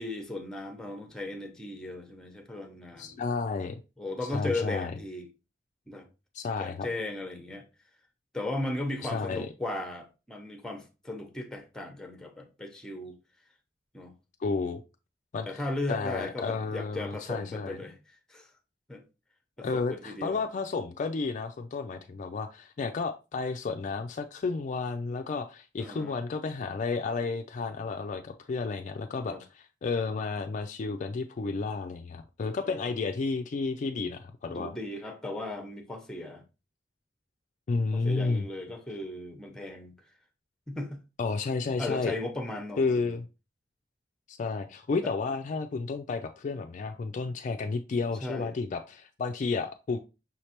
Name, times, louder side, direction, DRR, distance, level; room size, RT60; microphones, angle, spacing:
voice 1, 0.0-3.2 4.0-5.3 5.9-6.1 6.6-7.6 8.3-13.2 13.9-14.1 15.5-18.0 18.3-18.5 18.9-19.0 19.6-20.4 25.8-26.2 29.3-29.4 32.6-32.9 34.5-36.4 37.9-40.0 40.7-41.0 41.8-43.2 45.0-45.1 48.2-48.5, left 2 dB, 5° left, 0.7 m, -36 dB
voice 2, 3.0-3.8 4.3-4.9 6.3-6.9 9.0-9.5 14.4-14.8 15.3-15.6 15.9-17.8 19.6-34.8 37.7-38.5 41.2-42.1 42.8-43.3 44.3-50.0, left 4 dB, 40° left, 0.3 m, -32 dB
5.6 x 3.2 x 2.9 m
head